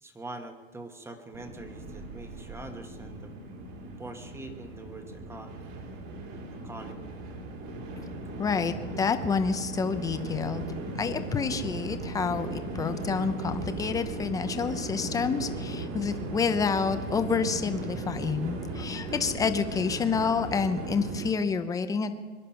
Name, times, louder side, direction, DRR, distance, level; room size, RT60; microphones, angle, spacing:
voice 1, 0.0-3.3 4.0-5.5 6.6-7.1, right 2 dB, 5° right, 6 dB, 1.2 m, -43 dB
Train, 1.3-21.3, right 2 dB, 45° right, 2.8 m, -37 dB
voice 2, 8.4-10.6 11.0-22.1, left 5 dB, 10° left, 9 dB, 0.6 m, -28 dB
23.5 x 10.5 x 5.7 m, 1.4 s
supercardioid pair, 150°, 37 cm